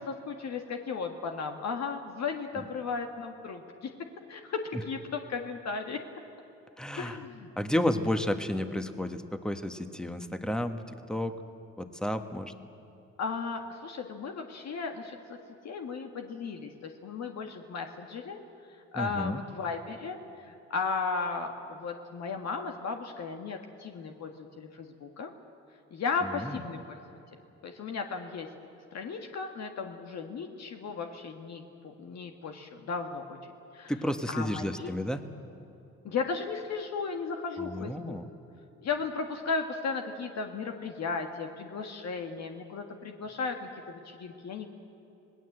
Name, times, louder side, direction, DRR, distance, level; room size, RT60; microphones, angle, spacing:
voice 1, 0.0-3.9 4.3-6.0 7.0-7.5 13.2-15.4 15.6-18.4 18.9-25.3 25.9-27.0 27.6-28.5 28.9-33.4 33.7-33.9 34.3-34.9 36.0-38.2 38.8-44.7, left 5 dB, 60° left, 4 dB, 1.7 m, -35 dB
voice 2, 6.8-7.2 7.6-10.8 11.1-11.3 11.8-12.5 18.9-19.4 26.2-26.6 33.9-35.2 37.6-38.2, left 1 dB, ahead, 7 dB, 1.5 m, -31 dB
27.0 x 18.5 x 8.0 m, 2.8 s
cardioid pair, 90°, 30 cm